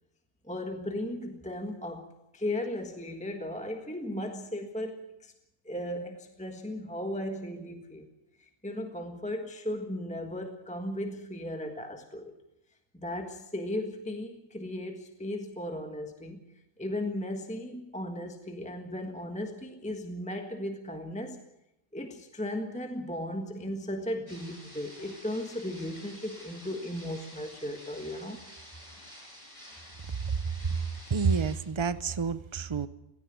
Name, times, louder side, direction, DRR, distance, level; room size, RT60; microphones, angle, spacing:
voice 1, 0.4-5.3 5.6-8.1 8.4-12.3 12.9-16.4 16.8-21.4 21.9-28.4, left 1 dB, 5° left, 5 dB, 1.4 m, -36 dB
sound 1, 24.3-31.5, equal, 20° left, 6.6 m, -50 dB
voice 2, 31.1-32.9, right 5 dB, 30° right, 14 dB, 0.5 m, -28 dB
17.0 x 16.5 x 9.5 m, 0.89 s
omnidirectional pair, 1.5 m